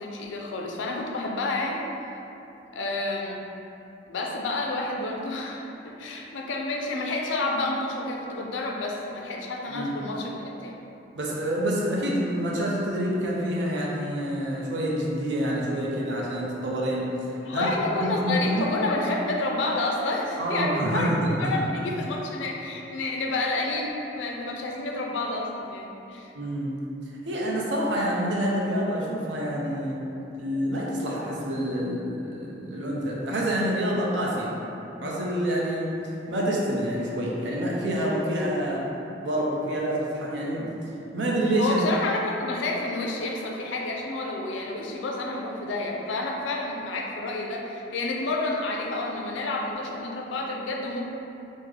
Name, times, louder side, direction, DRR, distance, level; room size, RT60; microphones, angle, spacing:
voice 1, 0.0-1.8 2.7-3.5 4.1-10.8 17.4-21.1 21.4-26.3 41.6-51.1, left 2 dB, 80° left, 0 dB, 0.4 m, -29 dB
voice 2, 11.1-17.1 17.5-17.7 18.0-18.7 20.4-21.9 26.4-26.7 27.2-30.0 30.3-34.5 35.0-36.0 36.3-38.8 39.2-40.7 41.1-41.8, equal, 70° right, -4 dB, 0.6 m, -27 dB
3.6 x 2.0 x 3.2 m, 2.9 s
head